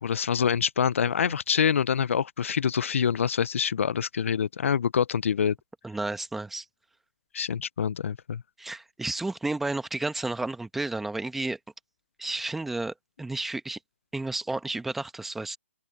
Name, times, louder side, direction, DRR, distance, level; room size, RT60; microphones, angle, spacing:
voice 1, 0.0-5.6 7.3-8.4, left 7 dB, 70° left, 0.5 m, -26 dB
voice 2, 5.8-6.6 8.6-11.6 12.2-13.8 14.1-15.6, right 2 dB, 5° right, 1.0 m, -32 dB
open air
hypercardioid pair, 160°, 7 cm